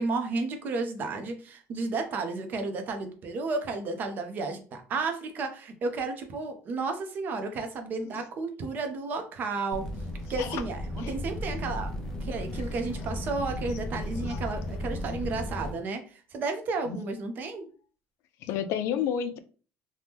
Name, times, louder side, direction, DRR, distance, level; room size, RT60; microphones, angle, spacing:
voice 1, 0.0-9.8 10.3-11.9 12.2-17.7, right 3 dB, 40° right, 6 dB, 0.6 m, -32 dB
sound 1, 9.7-15.7, left 1 dB, 10° left, 0.6 m, -35 dB
voice 2, 18.4-19.4, left 9 dB, 60° left, 10 dB, 0.4 m, -30 dB
2.8 x 2.1 x 3.4 m, 0.38 s
cardioid pair, 155°, 5 cm